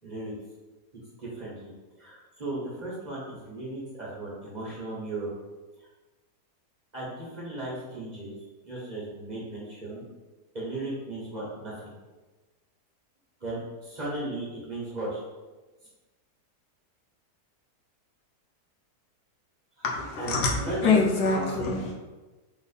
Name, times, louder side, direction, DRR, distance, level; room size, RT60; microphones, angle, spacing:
voice 1, 0.0-0.3 1.2-5.3 5.8-5.9 6.9-8.3 8.6-10.1 10.5-11.9 13.4-15.2 19.8-19.9 20.2-21.0 21.3-21.8, right 2 dB, 30° right, -7 dB, 1.2 m, -36 dB
voice 2, 19.8-20.5 20.8-21.9, left 4 dB, 85° left, -1 dB, 1.4 m, -25 dB
3.6 x 3.4 x 4.1 m, 1.2 s
omnidirectional pair, 1.7 m